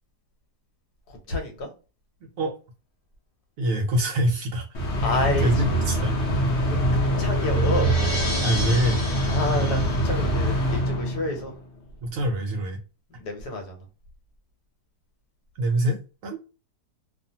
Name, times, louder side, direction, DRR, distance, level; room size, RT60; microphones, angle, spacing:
voice 1, 1.3-1.7 5.0-5.8 6.7-7.9 9.3-11.5 13.2-13.7, left 2 dB, 75° left, 1.3 m, -29 dB
voice 2, 3.6-4.7 5.1-6.1 8.4-9.0 12.0-12.8 15.6-16.4, right 1 dB, 65° right, 0.9 m, -25 dB
sound 1, 4.7-11.6, right 1 dB, 55° left, 0.9 m, -24 dB
sound 2, 5.9-10.7, left 2 dB, 20° left, 0.9 m, -35 dB
2.6 x 2.4 x 2.7 m
omnidirectional pair, 1.8 m